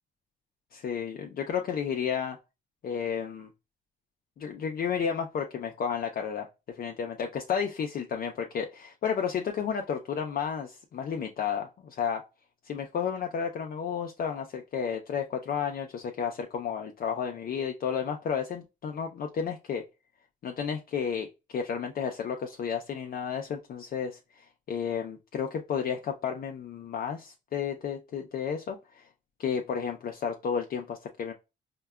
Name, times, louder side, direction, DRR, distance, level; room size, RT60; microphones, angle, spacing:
voice 1, 0.7-2.4 2.8-3.5 4.4-12.2 12.6-19.8 20.4-29.0 29.4-31.3, left 7 dB, 50° left, 3 dB, 0.5 m, -32 dB
4.4 x 2.1 x 2.2 m, 0.26 s
cardioid pair, 90°, 20 cm